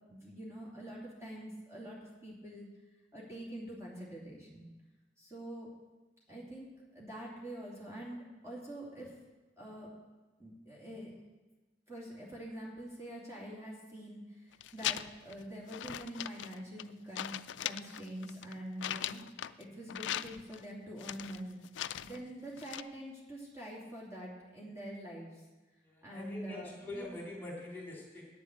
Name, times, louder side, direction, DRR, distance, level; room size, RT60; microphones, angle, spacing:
voice 1, 0.1-2.7 3.1-4.7 5.2-5.7 6.3-9.1 9.6-9.9 10.4-11.1 11.9-17.3 17.6-21.6 22.0-25.4 26.0-27.2, right 1 dB, 15° right, -6 dB, 2.8 m, -45 dB
sound 1, 14.5-15.3 15.7-16.9 17.2-19.6 19.9-20.6 21.0-22.2 22.6-22.8, left 11 dB, 80° left, 0.4 m, -39 dB
voice 2, 25.8-28.3, left 2 dB, 10° left, -3 dB, 2.9 m, -44 dB
9.6 x 7.9 x 8.3 m, 1.2 s
head